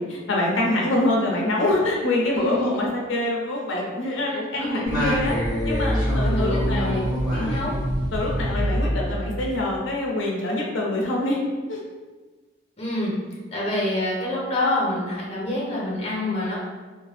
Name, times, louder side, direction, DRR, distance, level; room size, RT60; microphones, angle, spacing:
voice 1, 0.0-5.4 5.6-7.0 7.4-7.7 8.1-11.4 11.7-11.8, left 1 dB, 85° left, -2 dB, 0.5 m, -25 dB
voice 2, 2.3-2.9 4.3-5.1 6.2-7.7 12.8-13.1 13.5-16.6, left 1 dB, 30° left, -5 dB, 0.7 m, -27 dB
Singing, 4.9-9.6, equal, ahead, 1.4 m, -25 dB
2.6 x 2.2 x 3.2 m, 1.3 s
head